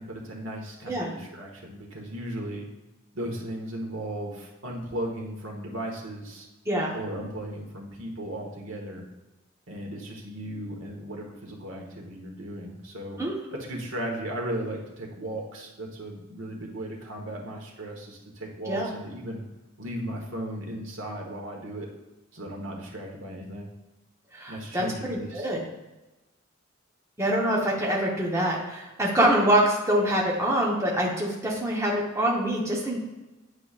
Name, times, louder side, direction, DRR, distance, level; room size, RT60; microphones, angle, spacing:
voice 1, 0.0-2.7 3.1-6.5 6.9-9.0 9.7-13.2 13.5-19.4 19.8-21.9 22.3-23.7 24.5-25.5, right 1 dB, 80° right, 0 dB, 1.2 m, -36 dB
voice 2, 24.3-25.6 27.2-33.0, right 1 dB, 15° right, -3 dB, 1.0 m, -25 dB
8.8 x 5.0 x 2.4 m, 1.1 s
head